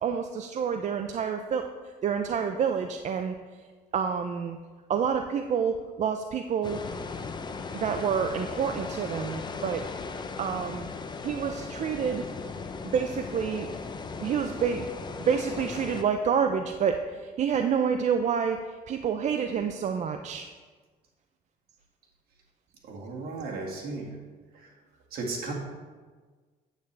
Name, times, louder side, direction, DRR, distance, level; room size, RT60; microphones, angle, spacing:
voice 1, 0.0-1.7 2.0-3.3 3.9-4.6 4.9-6.8 7.7-9.8 10.4-10.9 11.2-12.3 12.9-13.7 14.2-14.9 15.3-20.5, right 7 dB, 45° right, 6 dB, 0.5 m, -28 dB
sound 1, 6.6-16.0, left 4 dB, 25° left, 0.6 m, -37 dB
voice 2, 22.8-24.1 24.5-24.7 25.1-25.5, right 3 dB, 65° right, -1 dB, 2.0 m, -35 dB
9.0 x 8.2 x 3.3 m, 1.4 s
cardioid pair, 110°, 17 cm